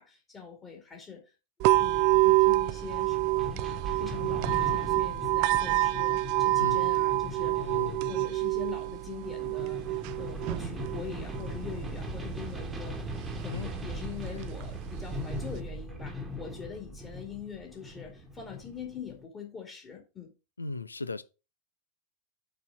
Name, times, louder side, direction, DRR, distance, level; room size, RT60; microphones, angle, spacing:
voice 1, 0.0-1.3 1.8-3.6 4.0-7.7 8.1-9.8 10.2-13.1 13.4-20.3, left 6 dB, 25° left, 2.2 m, -43 dB
sound 1, 1.6-15.6, right 18 dB, 45° right, 0.4 m, -28 dB
sound 2, 1.7-19.3, equal, 15° right, 1.3 m, -40 dB
voice 2, 7.6-8.1 13.5-13.8 14.3-14.5 20.6-21.2, left 3 dB, 80° left, 0.4 m, -37 dB
6.9 x 4.3 x 6.0 m
figure-of-eight pair, 90°, 0 cm